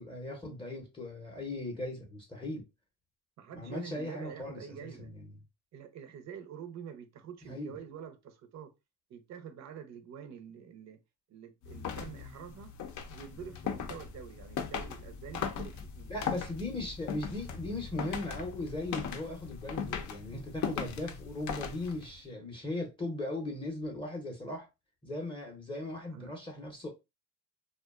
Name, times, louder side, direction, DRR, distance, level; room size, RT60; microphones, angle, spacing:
voice 1, 0.0-2.6 3.5-5.3 7.5-7.7 16.1-24.7 25.0-26.9, left 2 dB, 15° left, 0.7 m, -38 dB
voice 2, 3.4-5.1 5.7-8.7 9.1-11.0 11.3-12.7 13.1-16.1 26.1-26.3, right 8 dB, 45° right, 0.6 m, -46 dB
sound 1, 11.6-22.2, left 7 dB, 50° left, 0.6 m, -39 dB
2.5 x 2.2 x 2.3 m
supercardioid pair, 95°, 38 cm